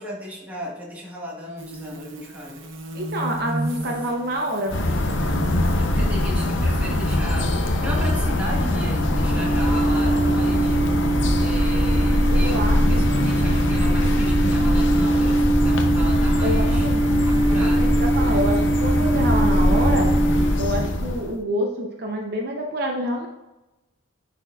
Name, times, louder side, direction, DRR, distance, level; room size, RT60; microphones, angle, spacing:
voice 1, 0.0-2.7 5.1-7.5 7.8-16.9 17.2-18.0, equal, 5° right, -4 dB, 1.4 m, -35 dB
sound 1, 1.6-7.2, right 1 dB, 70° right, 0.9 m, -34 dB
voice 2, 2.9-4.8 9.6-9.8 12.3-13.0 16.4-17.1 17.6-20.1 20.6-23.3, equal, 50° right, 1 dB, 0.6 m, -27 dB
sound 2, 4.7-21.4, left 1 dB, 65° left, 0.7 m, -22 dB
sound 3, 6.9-20.9, right 2 dB, 35° right, 1.2 m, -24 dB
9.9 x 4.2 x 2.4 m, 1.0 s
head